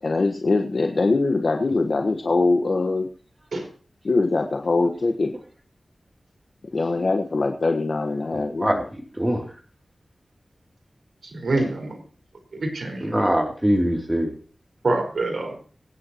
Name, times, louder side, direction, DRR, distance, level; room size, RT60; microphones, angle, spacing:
voice 1, 0.0-3.1 4.0-5.3 6.7-8.8, left 3 dB, 65° left, 3 dB, 1.4 m, -22 dB
voice 2, 8.3-9.5 13.0-14.3, equal, 15° right, 2 dB, 3.1 m, -23 dB
voice 3, 11.4-11.9 12.5-13.1 14.8-15.6, right 2 dB, 80° right, 2 dB, 4.9 m, -25 dB
24.0 x 9.8 x 3.0 m, 0.40 s
wide cardioid pair, 60°, 0 cm